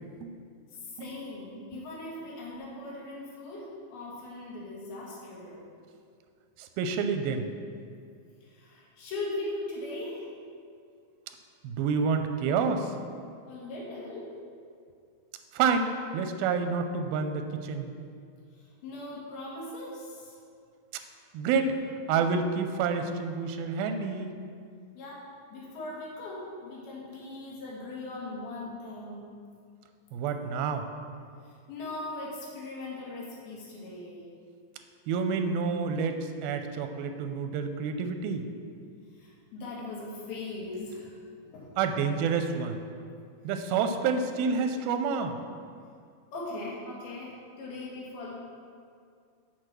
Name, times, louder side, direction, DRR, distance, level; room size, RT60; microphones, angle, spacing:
voice 1, 0.8-5.6 8.4-10.3 13.5-14.3 18.5-20.4 25.0-29.3 31.4-34.2 39.1-41.1 41.4-41.8 45.7-45.8 46.3-48.3, left 2 dB, 90° left, -4 dB, 3.6 m, -39 dB
voice 2, 6.6-7.5 11.6-12.9 15.5-17.9 21.3-21.8 22.1-24.3 30.1-30.8 35.1-38.5 41.8-42.8 43.4-45.3, right 5 dB, 85° right, 7 dB, 2.5 m, -28 dB
6.6 x 6.5 x 6.0 m, 2.3 s
omnidirectional pair, 4.2 m